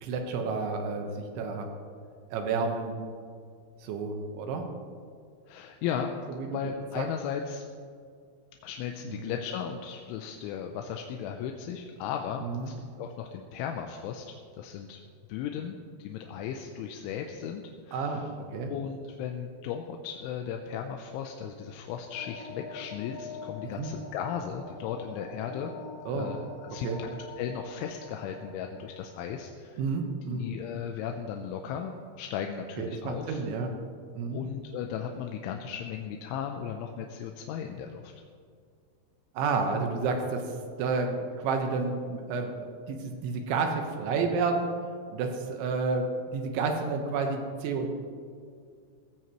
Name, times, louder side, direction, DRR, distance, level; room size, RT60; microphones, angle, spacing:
voice 1, 0.0-1.7 2.3-2.9 3.8-4.7 6.4-6.6 7.0-7.1 9.1-9.3 12.4-12.7 17.9-18.7 23.6-23.9 26.1-26.3 26.8-27.0 29.8-30.5 32.8-33.7 34.2-34.4 39.3-42.5 42.9-44.7 45.1-47.9, right 4 dB, 75° right, 3 dB, 3.4 m, -30 dB
voice 2, 5.5-6.1 6.5-7.7 8.6-15.0 15.3-18.3 18.7-25.7 26.1-26.9 27.4-29.8 30.3-33.4 34.3-38.1, left 8 dB, 85° left, 3 dB, 3.1 m, -36 dB
sound 1, 22.1-29.1, left 3 dB, 60° left, 3.4 m, -45 dB
16.0 x 15.0 x 3.1 m, 2.2 s
omnidirectional pair, 5.6 m